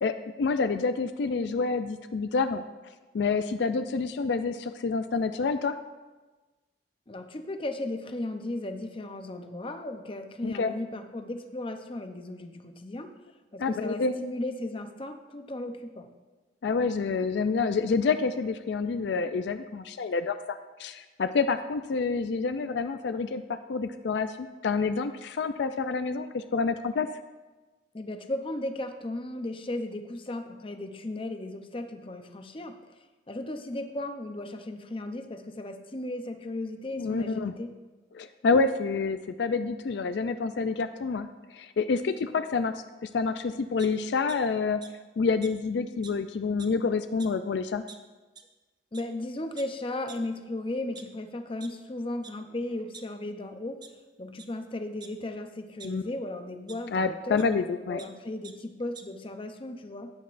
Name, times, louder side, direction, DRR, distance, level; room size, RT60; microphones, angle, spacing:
voice 1, 0.0-2.6 3.1-5.8 10.4-10.7 13.6-14.1 16.6-27.1 36.9-37.5 38.1-41.3 41.5-42.7 43.0-44.8 45.2-47.8 55.8-56.0 56.9-58.0, left 4 dB, 70° left, 10 dB, 0.4 m, -28 dB
voice 2, 7.1-13.1 13.5-16.1 27.9-33.0 33.3-37.7 48.9-53.8 54.2-57.4 57.9-60.1, left 1 dB, 30° left, 7 dB, 0.6 m, -36 dB
sound 1, 43.8-44.4 44.8-44.9 45.4-45.5 46.0-46.1 46.4-46.8 47.2-47.3 47.9-48.0 48.4-48.5 48.9-49.0 49.6-49.7 50.1-50.2 50.7-51.7 52.2-52.3 52.7-53.4 53.8-53.9 54.3-54.5 55.0-55.9 56.7-56.8 57.4-57.5 57.7-58.1 58.4-58.5 58.8-59.0, right 6 dB, 25° right, 0.6 m, -47 dB
14.0 x 9.2 x 2.5 m, 1.2 s
head